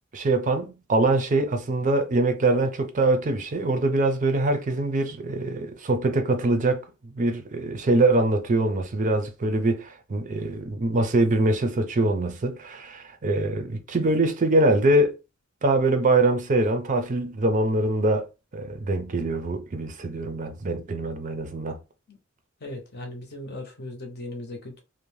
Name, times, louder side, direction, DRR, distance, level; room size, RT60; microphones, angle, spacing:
voice 1, 0.1-6.8 7.2-15.1 15.6-18.3 18.5-21.8, right 2 dB, 40° right, 0.4 m, -23 dB
voice 2, 22.6-24.8, left 1 dB, 50° left, 0.7 m, -38 dB
2.6 x 2.1 x 3.1 m
head